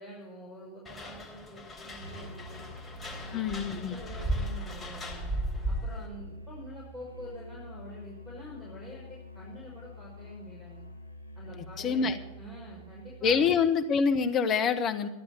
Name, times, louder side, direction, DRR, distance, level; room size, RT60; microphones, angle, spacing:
voice 1, 0.0-2.7 3.2-5.3 5.7-10.9 11.4-13.6, equal, ahead, -5 dB, 5.4 m, -46 dB
sound 1, 0.8-6.1, right 1 dB, 15° left, 3.9 m, -36 dB
Musical instrument, 2.0-13.7, left 1 dB, 85° right, 2.2 m, -46 dB
voice 2, 3.3-3.9 11.6-12.2 13.2-15.1, left 6 dB, 30° left, 7 dB, 1.2 m, -26 dB
14.5 x 11.0 x 8.6 m, 1.0 s
figure-of-eight pair, 90°, 0 cm